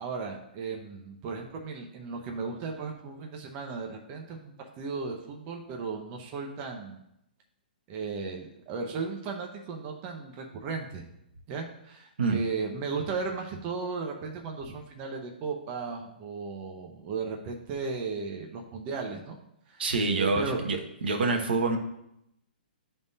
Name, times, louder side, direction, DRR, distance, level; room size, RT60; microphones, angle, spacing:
voice 1, 0.0-7.0 7.9-11.0 11.5-19.4 19.7-19.8 20.2-20.6, right 4 dB, 25° right, 2 dB, 0.6 m, -35 dB
voice 2, 19.8-21.8, right 3 dB, 75° right, 3 dB, 1.0 m, -26 dB
10.5 x 3.6 x 2.7 m, 0.81 s
hypercardioid pair, 160°, 5 cm